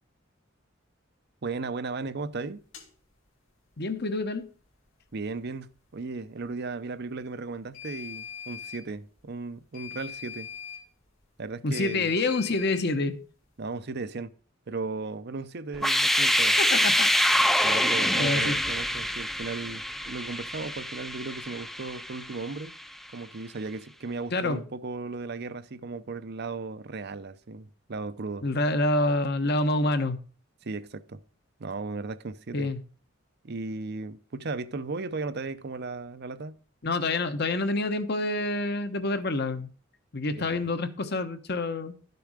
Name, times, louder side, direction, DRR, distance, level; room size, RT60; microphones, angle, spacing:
voice 1, 1.4-2.6 5.1-10.5 11.4-12.1 13.6-14.3 14.7-16.6 17.6-22.7 23.1-28.5 30.6-31.2 31.6-32.7 33.4-36.6 40.3-40.6, right 3 dB, 55° right, 0.6 m, -36 dB
sound 1, 2.7-2.9 7.7-8.8 9.7-10.8 11.7-12.8, left 7 dB, 70° left, 2.6 m, -41 dB
voice 2, 3.8-4.5 11.6-13.2 16.6-17.1 18.2-18.6 24.3-24.6 28.4-30.2 32.5-32.8 36.8-39.7 40.1-41.9, left 2 dB, 55° left, 1.1 m, -27 dB
sound 2, 15.7-22.6, equal, ahead, 0.4 m, -25 dB
12.5 x 6.9 x 4.9 m
head